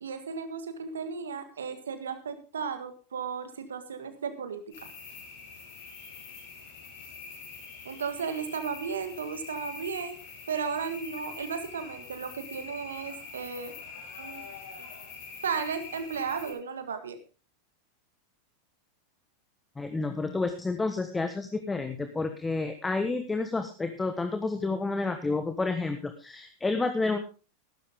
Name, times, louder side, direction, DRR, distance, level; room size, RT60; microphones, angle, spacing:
voice 1, 0.0-4.9 7.9-10.2 10.5-13.7 14.2-14.4 15.4-17.2, right 6 dB, 75° right, 9 dB, 1.8 m, -35 dB
sound 1, 4.7-16.5, left 5 dB, 60° left, 5.9 m, -44 dB
voice 2, 19.8-27.2, left 3 dB, 15° left, 7 dB, 1.3 m, -30 dB
14.5 x 12.5 x 3.7 m, 0.34 s
figure-of-eight pair, 90°, 0 cm